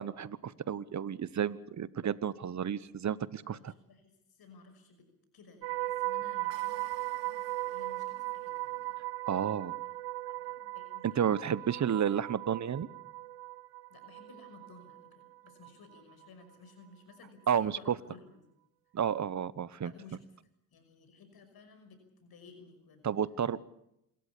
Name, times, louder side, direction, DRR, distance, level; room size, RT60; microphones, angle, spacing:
voice 1, 0.0-3.7 9.3-9.7 11.0-12.9 17.5-17.9 18.9-19.9 23.0-23.6, right 8 dB, 45° right, 19 dB, 1.1 m, -31 dB
voice 2, 3.4-5.1 5.3-8.9 10.3-11.5 13.9-18.4 19.8-20.2 20.7-23.2, left 4 dB, 65° left, 7 dB, 5.9 m, -56 dB
sound 1, 5.6-15.7 16.0-16.3, right 19 dB, 85° right, 1.2 m, -38 dB
27.5 x 13.5 x 8.4 m, 0.80 s
supercardioid pair, 65°, 40 cm